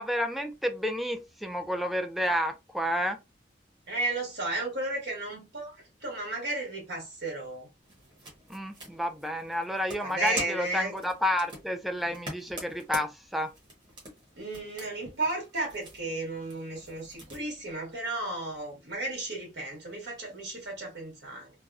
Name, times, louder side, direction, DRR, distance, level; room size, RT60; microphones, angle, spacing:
voice 1, 0.0-3.2 8.5-13.5, equal, ahead, 0.3 m, -30 dB
voice 2, 3.9-7.7 10.0-10.9 14.4-21.5, right 2 dB, 80° right, 1.6 m, -34 dB
sound 1, 7.8-17.4, right 1 dB, 25° right, 1.2 m, -45 dB
3.3 x 2.2 x 2.4 m
head